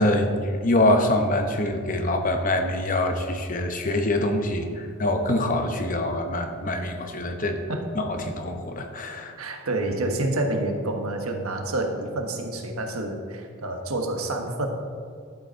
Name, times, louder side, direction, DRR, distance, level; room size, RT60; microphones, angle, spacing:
voice 1, 0.0-7.6 7.9-9.4, left 1 dB, 35° left, 5 dB, 0.9 m, -24 dB
voice 2, 9.4-14.7, right 2 dB, 80° right, 4 dB, 1.3 m, -28 dB
12.0 x 7.8 x 4.4 m, 2.2 s
head